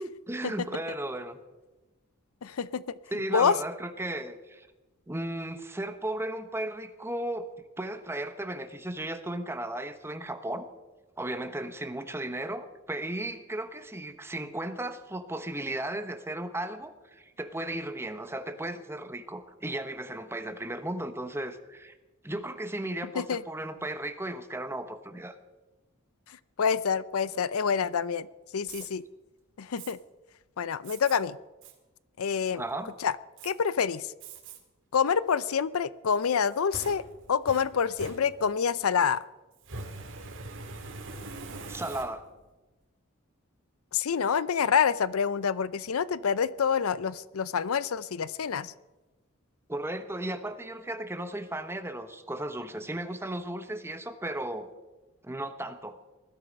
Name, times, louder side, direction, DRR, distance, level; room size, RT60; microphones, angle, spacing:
voice 1, 0.0-1.4 3.1-4.7 5.1-7.5 7.8-10.7 11.2-21.9 22.2-25.3 32.5-33.0 41.7-42.3 49.7-54.7 55.2-56.0, right 1 dB, 10° right, 9 dB, 1.1 m, -35 dB
voice 2, 2.4-2.8 3.3-3.6 23.1-23.4 26.6-28.3 28.5-29.0 29.6-30.0 30.6-31.4 32.2-32.6 33.0-33.1 33.4-34.1 34.9-37.0 37.3-39.2 43.9-48.7, left 6 dB, 85° left, 18 dB, 0.5 m, -27 dB
Fire, 28.6-28.9 29.8-29.9 30.8-31.2 31.6-31.7 32.3-32.7 33.4-33.5 34.2-34.6 35.1-35.2 36.2-38.7 39.6-42.4, right 3 dB, 65° right, 2.2 m, -43 dB
20.0 x 13.0 x 5.3 m, 1.1 s
head